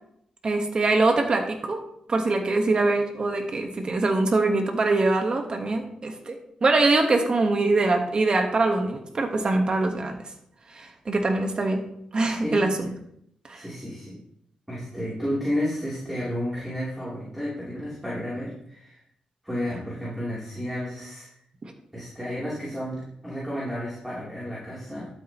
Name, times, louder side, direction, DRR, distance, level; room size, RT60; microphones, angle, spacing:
voice 1, 0.4-1.8 2.1-10.2 10.7-11.8 12.1-12.7 13.4-13.6, right 3 dB, 40° right, 4 dB, 1.3 m, -23 dB
voice 2, 13.5-14.1 14.7-19.0 19.4-21.3 21.9-25.1, equal, 5° right, -8 dB, 3.2 m, -32 dB
12.0 x 8.4 x 3.0 m, 0.73 s
cardioid pair, 110°, 2 cm